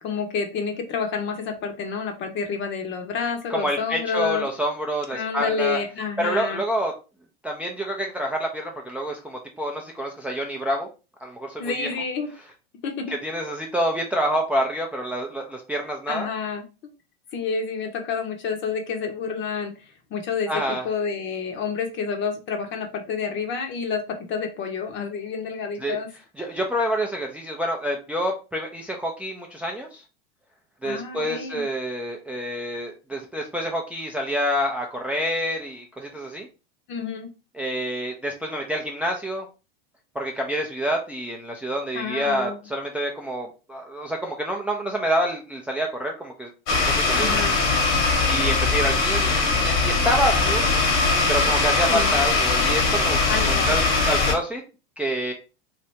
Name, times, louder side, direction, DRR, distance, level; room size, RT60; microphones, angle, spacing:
voice 1, 0.0-4.5 5.1-6.6 11.6-12.3 12.8-13.1 16.1-16.6 17.3-26.1 30.8-31.6 36.9-37.3 41.9-42.6 47.1-47.6 51.9-52.1 53.3-53.7, left 5 dB, 40° left, 5 dB, 0.9 m, -29 dB
voice 2, 3.5-5.8 6.2-6.9 7.4-10.9 11.2-11.9 13.2-16.3 20.5-20.8 25.8-26.0 26.4-30.0 30.8-36.5 37.6-39.4 40.1-47.4 48.3-50.7 51.3-53.2 53.4-54.6 55.0-55.3, equal, 5° right, 0 dB, 0.4 m, -27 dB
sound 1, 46.7-54.3, left 3 dB, 60° left, 1.4 m, -21 dB
2.9 x 2.6 x 3.2 m, 0.31 s
supercardioid pair, 115°, 30 cm